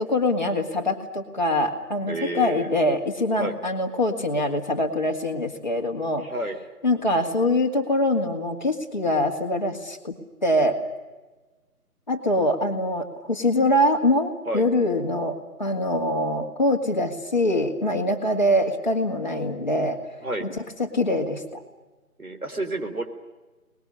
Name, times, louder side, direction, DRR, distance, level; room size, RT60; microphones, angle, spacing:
voice 1, 0.0-6.3 6.8-10.2 10.4-10.8 12.1-20.0 20.4-20.5 20.8-21.6, left 1 dB, 30° left, 1 dB, 2.3 m, -24 dB
voice 2, 2.1-2.7 3.4-3.6 6.2-6.6 14.5-14.7 20.2-20.5 22.2-23.0, right 1 dB, 65° right, 6 dB, 3.7 m, -30 dB
23.0 x 20.5 x 9.9 m, 1.2 s
figure-of-eight pair, 165°, 46 cm